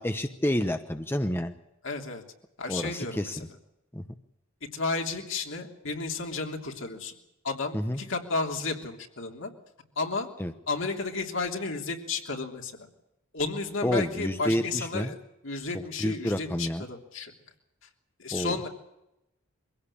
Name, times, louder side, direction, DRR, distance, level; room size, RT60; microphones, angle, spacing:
voice 1, 0.0-1.5 2.7-3.4 3.9-4.0 7.7-8.0 10.4-10.5 13.8-15.1 15.7-16.8 18.3-18.6, equal, 10° left, 8 dB, 0.9 m, -29 dB
voice 2, 1.8-2.2 2.6-3.4 4.7-7.1 7.4-9.5 10.0-10.3 10.7-12.7 13.3-15.2 15.4-17.3 18.2-18.7, left 3 dB, 65° left, 3 dB, 3.2 m, -32 dB
24.0 x 17.0 x 8.6 m, 0.88 s
head